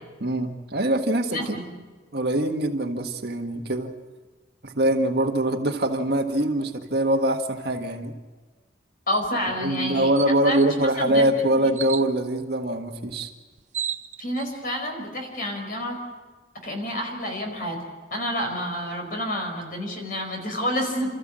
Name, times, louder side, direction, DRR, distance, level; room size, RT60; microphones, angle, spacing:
voice 1, 0.2-1.6 2.1-3.9 4.6-8.1 9.6-13.3, right 1 dB, 60° right, 4 dB, 1.6 m, -23 dB
voice 2, 1.3-1.6 9.1-10.1 10.4-10.6 11.0-11.2 11.6-11.7 14.2-16.0 16.6-21.1, equal, 50° left, 3 dB, 4.8 m, -29 dB
sound 1, 9.1-9.3 9.7-9.8 10.2-10.7 11.7-12.1 13.2-13.3 13.5-14.5, right 9 dB, 40° right, 0.8 m, -33 dB
29.0 x 14.0 x 7.6 m, 1.3 s
head